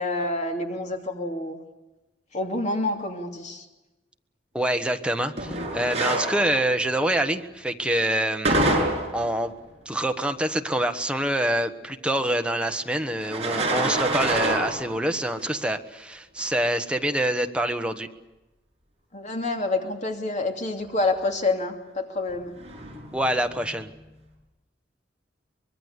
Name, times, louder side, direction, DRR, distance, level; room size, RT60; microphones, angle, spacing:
voice 1, 0.0-1.6 2.3-3.7 19.1-22.6, left 2 dB, 40° left, 3 dB, 2.8 m, -27 dB
voice 2, 4.5-8.6 9.1-9.5 9.8-18.1 23.1-23.9, right 1 dB, 5° right, 6 dB, 1.3 m, -26 dB
sound 1, 5.4-6.8 8.4-9.4 13.2-15.0 15.4-15.5 16.4-16.5 22.3-23.4, right 2 dB, 35° right, 7.4 m, -26 dB
24.5 x 21.5 x 8.2 m, 1.0 s
head